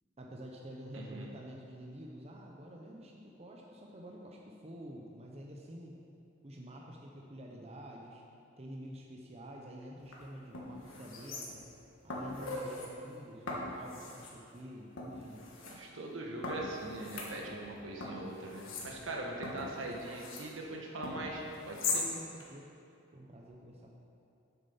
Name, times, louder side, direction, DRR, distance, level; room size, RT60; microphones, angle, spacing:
voice 1, 0.2-6.0 6.4-8.2 8.6-11.6 12.0-15.4 21.9-22.7 23.1-24.0, equal, 30° right, -1 dB, 0.7 m, -48 dB
voice 2, 0.9-1.3 15.7-22.1, right 2 dB, 75° right, -1 dB, 1.3 m, -41 dB
sound 1, 10.0-10.1 10.5-11.8 12.1-12.9 13.5-14.4 15.0-15.7 16.4-17.7 18.0-20.5 21.0-22.1 22.4-22.5, left 3 dB, 80° left, 1.5 m, -40 dB
8.4 x 6.8 x 5.5 m, 2.7 s
head